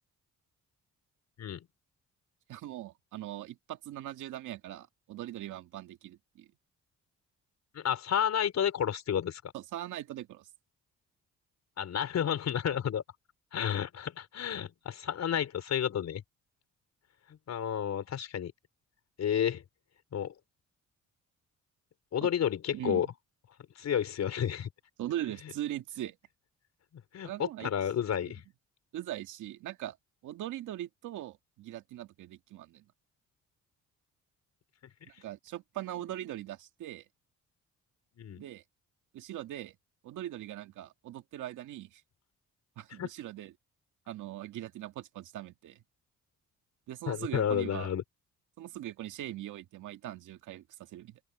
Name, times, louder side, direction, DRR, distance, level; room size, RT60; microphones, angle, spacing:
voice 1, 2.5-6.5 9.5-10.5 22.2-22.3 22.7-23.0 25.0-26.2 27.2-27.7 28.2-28.3 28.9-30.0 30.2-32.8 35.1-37.0 38.4-38.6 39.1-39.8 40.0-42.0 42.8-43.5 44.1-45.8 46.9-47.9 48.6-51.2, right 13 dB, 80° right, 2.1 m, -40 dB
voice 2, 7.7-9.4 11.8-13.0 13.5-16.2 17.5-18.5 19.2-19.6 20.1-20.3 22.1-23.1 23.8-24.7 27.1-28.4 38.2-38.4 43.0-43.1 47.1-48.0, left 9 dB, 60° left, 4.6 m, -31 dB
open air
cardioid pair, 90°, 30 cm